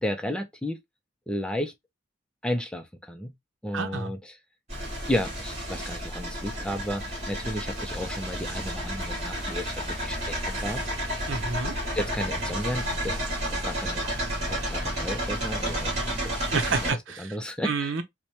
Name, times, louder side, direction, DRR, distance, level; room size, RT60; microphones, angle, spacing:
voice 1, 0.0-0.8 1.3-1.7 2.4-3.3 3.6-4.3 5.1-11.3 11.9-13.2 13.6-14.0 14.5-15.9 16.2-16.4 16.8-17.9, equal, 5° left, 0.5 m, -33 dB
voice 2, 3.7-4.1 11.3-11.7 16.5-17.4 17.6-18.0, right 4 dB, 85° right, 0.7 m, -29 dB
sound 1, 4.7-16.9, right 1 dB, 35° right, 2.4 m, -31 dB
4.6 x 2.2 x 2.8 m
head